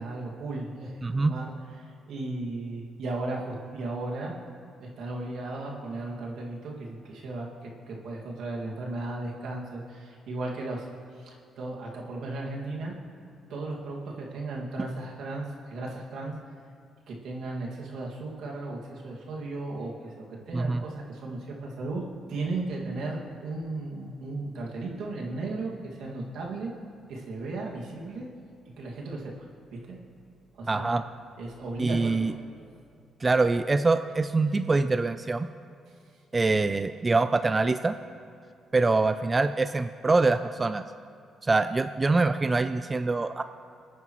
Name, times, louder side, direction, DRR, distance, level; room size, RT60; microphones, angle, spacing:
voice 1, 0.0-4.3 4.8-10.9 11.2-12.9 13.5-16.3 17.1-22.0 22.3-26.7 27.1-28.3 28.7-29.4 29.8-30.0 30.5-31.0 31.4-32.3, right 2 dB, 75° right, -2 dB, 2.1 m, -35 dB
voice 2, 1.0-1.3 20.5-20.8 30.7-31.0 31.8-32.3 33.2-35.5 36.3-38.0 38.7-40.8 41.4-43.4, right 3 dB, 25° right, 10 dB, 0.3 m, -24 dB
24.5 x 9.3 x 3.1 m, 2.3 s
cardioid pair, 90°, 0 cm